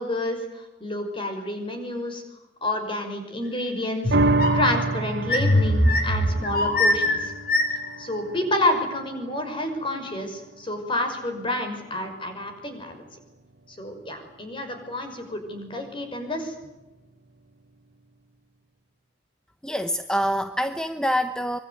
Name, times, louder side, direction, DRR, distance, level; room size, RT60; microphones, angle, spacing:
voice 1, 0.0-2.2 2.6-4.2 4.5-7.3 8.0-13.0 13.8-16.5, left 1 dB, 30° left, 6 dB, 5.9 m, -29 dB
sound 1, 4.0-4.7 5.2-8.0, left 1 dB, 55° left, 6.6 m, -22 dB
sound 2, 4.1-10.8 11.2-11.3, right 2 dB, 70° right, 1.1 m, -29 dB
voice 2, 19.6-21.6, equal, 5° left, 9 dB, 0.9 m, -25 dB
25.5 x 23.0 x 9.7 m, 1.0 s
head